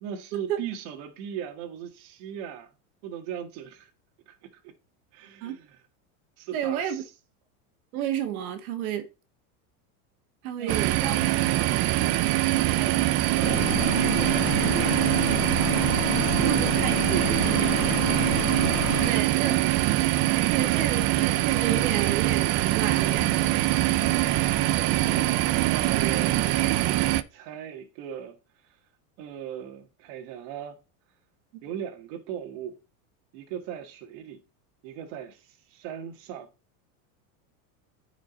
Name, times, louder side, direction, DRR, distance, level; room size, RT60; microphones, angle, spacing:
voice 1, 0.0-2.7 3.0-3.9 4.3-4.7 5.1-5.8 6.4-7.0 10.6-10.8 12.6-19.9 25.6-28.4 28.6-28.8 29.2-30.8 31.6-32.8 33.3-34.4 34.8-36.5, right 9 dB, 55° right, 1.7 m, -38 dB
voice 2, 6.5-7.0 7.9-9.1 10.4-11.2 11.8-12.3 16.4-17.0 19.1-19.5 20.5-23.5 26.1-26.2, right 9 dB, 75° right, 1.8 m, -31 dB
sound 1, 10.7-27.2, right 15 dB, 35° right, 0.5 m, -23 dB
sound 2, 13.4-19.1, left 16 dB, 60° left, 0.6 m, -31 dB
9.8 x 5.1 x 4.0 m
supercardioid pair, 150°, 44 cm